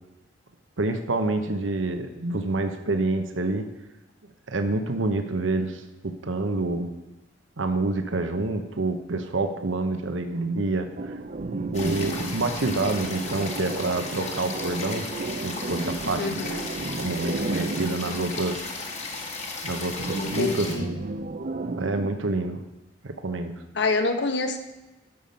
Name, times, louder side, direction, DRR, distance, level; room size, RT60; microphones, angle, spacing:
voice 1, 0.8-3.7 4.5-6.9 7.6-11.2 11.7-15.1 15.4-16.4 17.0-18.7 19.6-20.7 21.8-22.6 23.0-23.6, right 2 dB, 85° right, 7 dB, 1.0 m, -27 dB
sound 1, 11.0-19.2 19.9-22.1, right 3 dB, 45° right, 0.5 m, -33 dB
sound 2, 11.7-20.8, left 3 dB, 35° left, 1.6 m, -35 dB
voice 2, 16.2-16.7 20.2-20.9 23.7-24.6, left 3 dB, 65° left, 7 dB, 1.2 m, -26 dB
12.0 x 7.1 x 5.3 m, 1.1 s
head